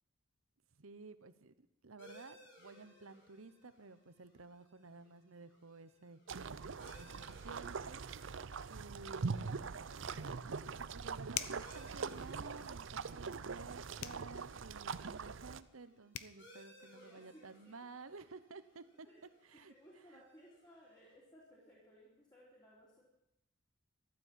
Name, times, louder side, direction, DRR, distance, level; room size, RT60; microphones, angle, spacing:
voice 1, 0.8-6.2 7.0-8.1 8.7-9.7 10.8-19.1 19.4-19.7, right 3 dB, 80° right, 13 dB, 1.0 m, -54 dB
sound 1, 2.0-21.1, equal, 55° left, 6.8 m, -64 dB
sound 2, 6.3-15.6, right 5 dB, 60° right, 0.6 m, -43 dB
sound 3, 11.3-11.7 14.0-14.3 15.8-15.9 16.1-16.4, left 10 dB, 80° left, 0.8 m, -41 dB
voice 2, 16.8-17.9 19.0-19.2 19.5-23.0, equal, 20° left, -6 dB, 3.4 m, -62 dB
14.0 x 12.0 x 7.6 m, 0.83 s
head